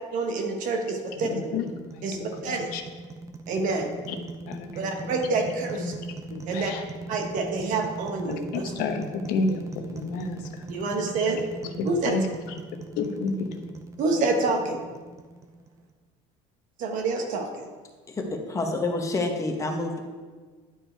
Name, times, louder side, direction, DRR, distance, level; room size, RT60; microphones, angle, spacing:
voice 1, 0.1-1.4 2.0-2.2 2.4-2.7 3.5-3.9 4.7-5.9 6.5-6.7 7.1-8.7 10.7-11.4 11.8-12.2 14.0-14.8 16.8-17.7, right 3 dB, 60° right, 3 dB, 1.3 m, -27 dB
sound 1, 0.7-15.9, right 2 dB, 20° right, 0.6 m, -40 dB
voice 2, 1.2-2.8 4.1-4.2 4.5-5.9 6.3-6.8 8.3-10.7 11.6-12.6 13.0-13.7, left 4 dB, 70° left, 6 dB, 0.9 m, -32 dB
voice 3, 18.1-20.0, left 2 dB, 20° left, 3 dB, 1.0 m, -28 dB
11.0 x 4.5 x 4.5 m, 1.5 s
cardioid pair, 140°, 15 cm